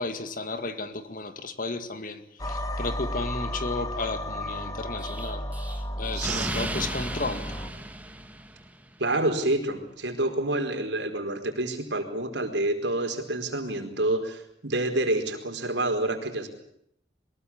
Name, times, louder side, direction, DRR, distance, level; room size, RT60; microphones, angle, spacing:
voice 1, 0.0-7.5, left 3 dB, 45° left, 2.1 m, -33 dB
sound 1, 2.4-7.7, left 1 dB, 20° left, 1.8 m, -33 dB
Explosion, 5.0-8.8, right 1 dB, 10° right, 1.8 m, -35 dB
voice 2, 6.1-6.7 9.0-16.5, right 2 dB, 70° right, 4.7 m, -28 dB
23.0 x 21.0 x 8.7 m
head